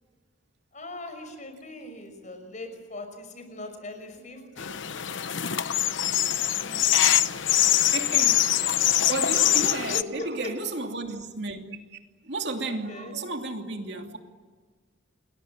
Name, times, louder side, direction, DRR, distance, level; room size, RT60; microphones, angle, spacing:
voice 1, 0.7-4.8 6.6-7.0 9.9-10.3 12.7-13.1, left 2 dB, 40° left, 6.0 m, -40 dB
sound 1, 4.6-10.0, left 11 dB, 70° left, 0.9 m, -23 dB
voice 2, 7.6-11.6 11.9-12.0 12.2-14.2, right 3 dB, 60° right, 2.8 m, -33 dB
29.5 x 21.5 x 9.0 m
head